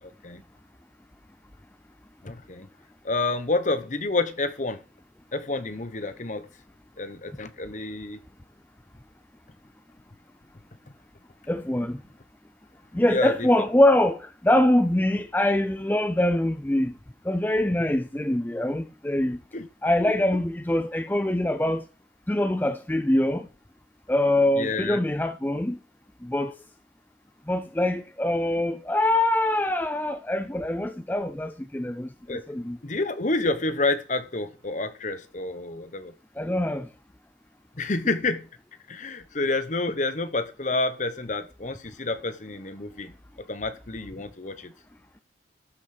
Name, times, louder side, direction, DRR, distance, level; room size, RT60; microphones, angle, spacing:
voice 1, 0.0-0.4 2.2-2.7 3.0-4.8 5.3-6.5 7.0-8.2 13.1-13.5 19.5-19.7 24.6-25.0 32.3-32.4 32.8-36.1 37.8-38.5 38.9-43.1 43.4-44.7, left 2 dB, 40° left, 1.0 m, -29 dB
voice 2, 11.5-12.0 12.9-16.9 17.3-19.4 19.8-21.8 22.3-23.5 24.1-25.8 26.2-26.5 27.5-32.8 36.4-36.9, left 1 dB, 10° left, 0.5 m, -24 dB
13.0 x 6.1 x 5.9 m
head